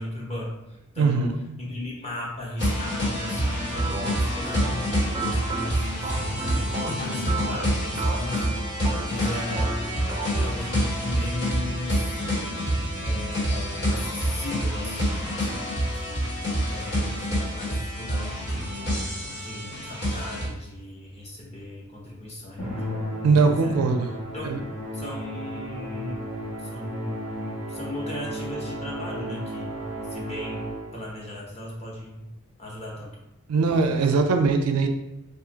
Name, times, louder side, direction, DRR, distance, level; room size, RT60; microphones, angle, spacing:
voice 1, 0.0-1.2 1.6-8.5 9.1-12.2 13.0-16.4 16.7-18.7 19.4-22.8 23.4-23.9 24.3-24.7 24.9-26.3 26.6-32.3 32.6-33.1 33.5-34.2, left 1 dB, 30° left, -4 dB, 0.9 m, -37 dB
voice 2, 1.0-1.5 23.2-24.1 24.5-24.6 33.5-34.9, right 4 dB, 85° right, 5 dB, 0.4 m, -21 dB
sound 1, 2.6-20.5, equal, 55° left, 1.5 m, -27 dB
sound 2, 3.6-10.6, right 3 dB, 25° right, 0.3 m, -35 dB
Musical instrument, 22.6-31.1, equal, 90° left, 1.2 m, -34 dB
2.6 x 2.4 x 3.9 m, 0.94 s
head